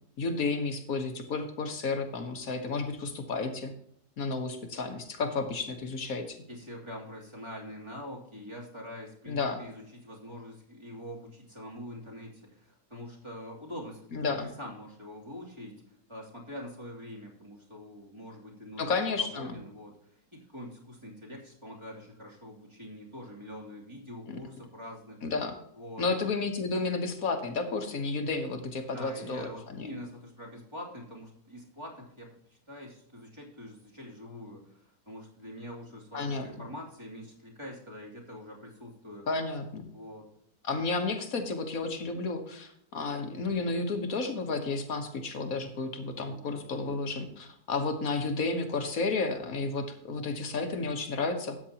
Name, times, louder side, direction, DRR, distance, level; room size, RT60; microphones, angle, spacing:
voice 1, 0.2-3.7 4.2-6.4 9.3-9.6 14.1-14.5 18.8-19.6 24.3-24.4 25.2-25.5 26.0-29.9 36.1-36.5 39.3-39.9 40.6-51.6, left 3 dB, 60° left, 6 dB, 1.6 m, -32 dB
voice 2, 6.5-15.8 16.1-25.2 25.8-26.1 28.9-39.3 39.9-40.3 46.2-46.5, equal, 15° right, -4 dB, 3.0 m, -44 dB
13.5 x 8.9 x 2.9 m, 0.72 s
omnidirectional pair, 1.7 m